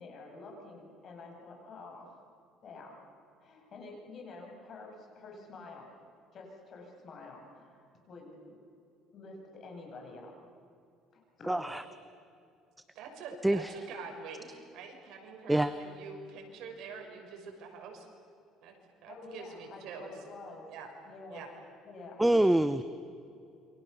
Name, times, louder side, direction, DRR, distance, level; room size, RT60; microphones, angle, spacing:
voice 1, 0.0-2.2 2.6-3.0 3.4-5.9 6.3-8.6 9.1-10.3 11.1-11.7 19.1-20.7 21.0-21.4 21.8-22.2, left 3 dB, 45° left, 1 dB, 7.9 m, -48 dB
voice 2, 11.5-11.8 13.4-13.7 15.5-15.7 22.2-22.8, right 1 dB, 5° right, 12 dB, 0.8 m, -25 dB
voice 3, 12.9-18.1 18.6-18.7 19.0-20.1 20.7-20.9 21.3-21.5, right 5 dB, 65° right, 2 dB, 6.1 m, -45 dB
28.5 x 25.5 x 7.0 m, 2.5 s
cardioid pair, 125°, 0 cm